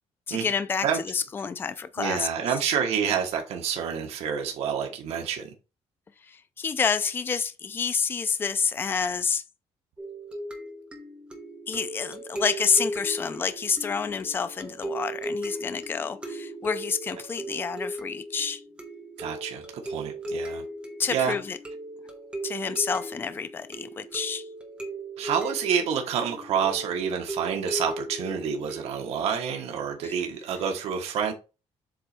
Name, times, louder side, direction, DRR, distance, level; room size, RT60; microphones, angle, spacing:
voice 1, 0.3-2.5 6.3-9.4 11.7-18.6 21.0-21.6 22.4-24.5 30.0-30.2, left 6 dB, 20° left, 0.4 m, -28 dB
voice 2, 2.0-5.5 19.2-20.6 21.1-21.4 25.2-31.3, right 7 dB, 65° right, 1.3 m, -28 dB
sound 1, 10.0-29.2, right 1 dB, 10° right, 1.1 m, -37 dB
7.7 x 3.1 x 4.4 m
cardioid pair, 180°, 12 cm